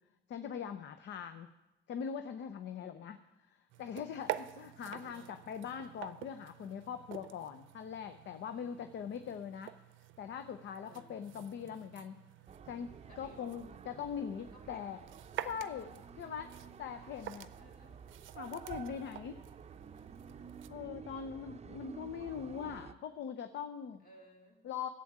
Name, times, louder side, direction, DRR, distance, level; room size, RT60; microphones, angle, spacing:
voice 1, 0.3-1.5 1.9-3.2 3.8-9.7 10.2-12.2 12.7-15.0 15.4-16.5 16.8-17.5 18.4-19.4 20.7-24.0 24.6-24.9, left 7 dB, 65° left, 8 dB, 0.7 m, -42 dB
voice 2, 2.7-3.2 4.9-5.4 8.5-9.0 10.8-11.3 13.1-13.5 14.5-15.0 17.0-17.1 17.6-18.0 20.7-21.1 24.0-24.6, equal, 50° left, 0 dB, 3.2 m, -61 dB
sound 1, 3.7-20.7, right 13 dB, 80° right, 0.5 m, -48 dB
sound 2, 12.5-22.9, right 7 dB, 35° right, 0.6 m, -51 dB
11.5 x 7.7 x 8.6 m, 1.0 s
cardioid pair, 90°, 20 cm